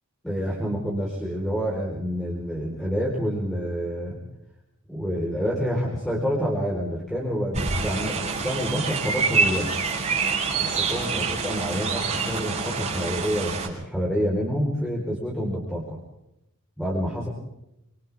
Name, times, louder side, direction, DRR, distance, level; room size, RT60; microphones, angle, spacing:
voice 1, 0.2-4.2 4.9-9.7 10.6-16.0 16.8-17.3, equal, 5° left, -4 dB, 4.6 m, -28 dB
sound 1, 7.5-13.7, right 4 dB, 35° right, 5.9 m, -26 dB
26.5 x 26.5 x 3.6 m, 0.84 s
head